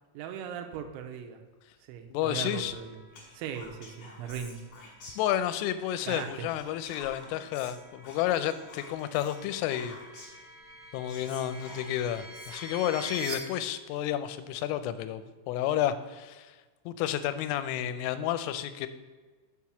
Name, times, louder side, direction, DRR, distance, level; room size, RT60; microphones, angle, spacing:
voice 1, 0.1-1.4 1.8-3.0 3.3-4.6 6.1-6.5, right 8 dB, 80° right, 5 dB, 2.9 m, -38 dB
voice 2, 2.1-2.7 5.2-10.0 10.9-16.6 16.9-18.9, left 11 dB, 85° left, 12 dB, 3.0 m, -31 dB
sound 1, 2.4-13.3, right 3 dB, 45° right, 1.8 m, -48 dB
Whispering, 3.1-5.7 6.0-10.5 10.8-10.9 11.1-13.3, left 2 dB, 45° left, 2.9 m, -50 dB
7.3 x 4.7 x 6.9 m, 1.3 s
omnidirectional pair, 5.9 m